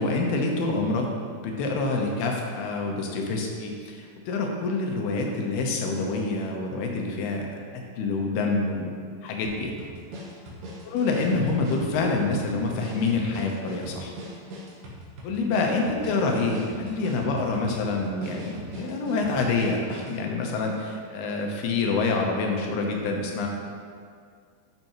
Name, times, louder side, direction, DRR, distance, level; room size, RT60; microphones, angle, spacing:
voice 1, 0.0-7.5 7.7-8.9 9.2-9.7 10.9-14.1 15.2-23.5, left 3 dB, 80° left, 1 dB, 3.0 m, -27 dB
sound 1, 9.5-20.2, equal, 80° right, 3.5 m, -41 dB
12.0 x 6.9 x 3.1 m, 2.1 s
omnidirectional pair, 4.5 m